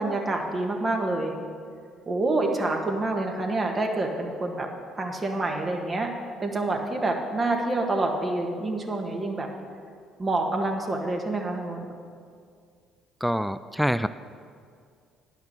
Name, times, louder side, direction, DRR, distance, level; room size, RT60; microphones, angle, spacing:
voice 1, 0.0-1.3 2.1-4.7 5.0-6.1 6.4-9.5 10.2-11.9, right 2 dB, 30° right, 2 dB, 1.7 m, -27 dB
voice 2, 13.2-14.1, equal, ahead, 13 dB, 0.3 m, -25 dB
10.0 x 5.7 x 7.9 m, 2.2 s
hypercardioid pair, 55°, 0 cm